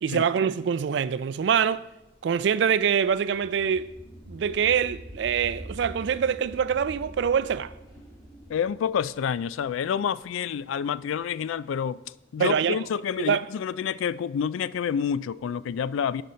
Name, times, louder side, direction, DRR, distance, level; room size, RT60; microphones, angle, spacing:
voice 1, 0.0-1.8 2.2-3.9 4.3-7.7 12.4-12.8 13.2-13.4, right 7 dB, 60° right, 0.3 m, -24 dB
sound 1, 1.8-10.6, equal, 20° left, 2.0 m, -45 dB
voice 2, 8.5-12.0 12.3-16.2, left 7 dB, 85° left, 0.3 m, -28 dB
12.0 x 5.3 x 4.3 m
head